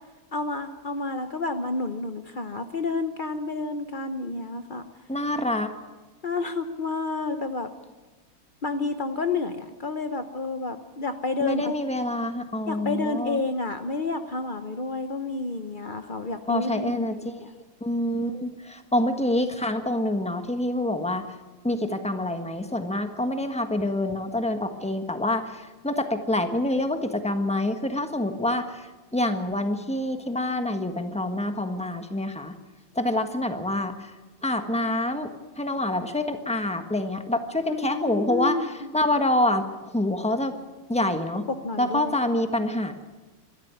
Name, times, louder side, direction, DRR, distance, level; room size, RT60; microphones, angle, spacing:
voice 1, 0.3-4.9 6.2-7.7 8.6-11.7 12.7-17.5 37.7-38.9 41.5-42.2, left 3 dB, 85° left, 8 dB, 0.4 m, -30 dB
voice 2, 5.1-5.7 11.4-13.4 16.5-17.4 17.8-21.2 21.6-28.9 29.1-32.5 32.9-34.1 34.4-38.6 38.9-39.7 39.9-40.5 40.9-41.4 41.8-42.9, left 1 dB, 5° left, 7 dB, 1.0 m, -26 dB
25.5 x 13.0 x 9.6 m, 1.2 s
omnidirectional pair, 2.4 m